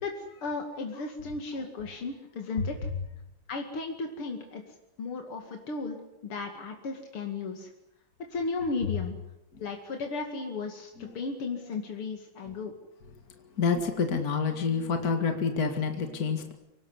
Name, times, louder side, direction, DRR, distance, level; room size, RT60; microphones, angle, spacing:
voice 1, 0.0-2.9 3.5-4.6 5.0-6.0 6.2-7.7 8.2-9.1 9.6-12.7, left 4 dB, 90° left, 3 dB, 3.2 m, -35 dB
voice 2, 13.3-16.5, left 5 dB, 45° left, 5 dB, 2.6 m, -28 dB
24.5 x 19.0 x 9.8 m, 0.87 s
omnidirectional pair, 2.3 m